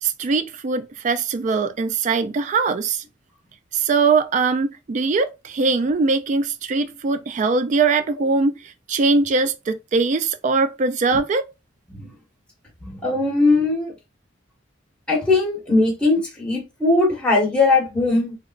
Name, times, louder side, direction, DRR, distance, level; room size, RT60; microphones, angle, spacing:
voice 1, 0.0-3.0 3.7-8.6 8.9-11.4, right 4 dB, 40° right, 0.3 m, -21 dB
voice 2, 12.8-13.9 15.1-18.4, left 3 dB, 5° left, 1.1 m, -20 dB
3.1 x 2.8 x 2.4 m
head